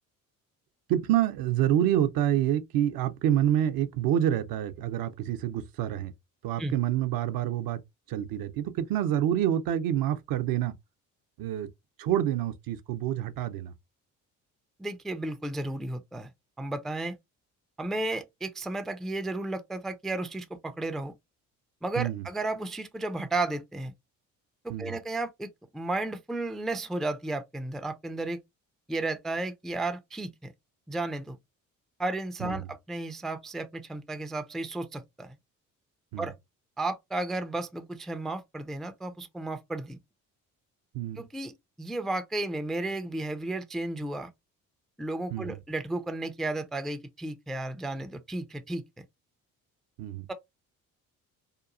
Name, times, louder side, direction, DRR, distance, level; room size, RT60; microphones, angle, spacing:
voice 1, 0.9-6.1 6.4-7.8 8.1-10.7 11.4-11.7 12.0-13.7 22.0-22.2 24.7-25.0 32.4-32.6 36.1-36.3 40.9-41.2 45.3-45.6 50.0-50.3, right 11 dB, 60° right, 0.6 m, -27 dB
voice 2, 14.8-16.3 16.6-17.2 17.8-21.1 21.8-23.9 24.6-28.4 28.9-30.5 30.9-31.4 32.0-35.4 36.2-36.3 36.8-40.0 41.2-41.5 41.8-44.3 45.0-48.8 50.3-50.4, right 2 dB, ahead, 0.3 m, -33 dB
2.9 x 2.3 x 2.4 m
hypercardioid pair, 55°, 40 cm